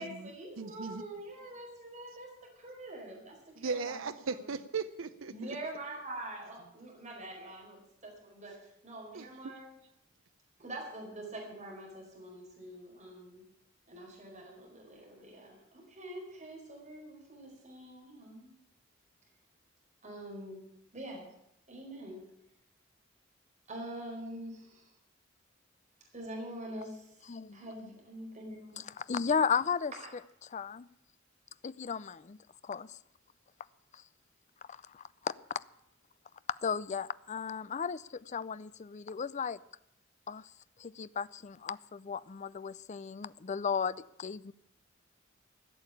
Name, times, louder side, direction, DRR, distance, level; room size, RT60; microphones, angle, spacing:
voice 1, 0.0-4.0 4.4-4.5 5.3-9.8 10.6-13.4 13.9-18.5 20.0-21.3 21.7-22.2 23.7-24.9 26.1-27.1 27.5-28.8, right 1 dB, 35° right, -1 dB, 4.6 m, -45 dB
voice 2, 0.6-1.0 3.6-5.3 9.1-9.5, right 4 dB, 85° right, 11 dB, 0.6 m, -37 dB
voice 3, 27.2-27.9 28.8-29.9 30.5-30.9 31.6-32.4 32.6-33.0 33.9-34.0 34.7-35.3 36.6-39.6 40.3-40.5 40.8-44.5, left 6 dB, 35° left, 17 dB, 0.5 m, -35 dB
15.5 x 7.1 x 9.9 m, 0.80 s
head